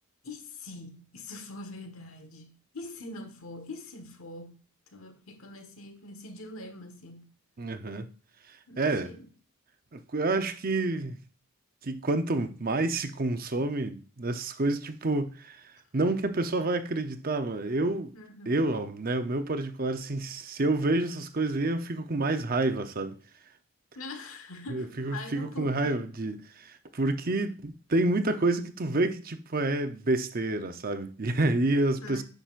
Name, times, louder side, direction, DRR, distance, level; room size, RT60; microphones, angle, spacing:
voice 1, 0.2-4.6 4.9-7.3 8.7-9.3 18.1-18.6 23.9-26.1 32.0-32.2, left 2 dB, 65° left, 1.4 m, -43 dB
voice 2, 7.6-8.1 8.8-9.1 9.9-11.2 11.8-15.6 15.9-18.1 18.5-23.2 24.7-32.2, right 2 dB, 40° right, 0.7 m, -28 dB
10.0 x 6.0 x 2.5 m
head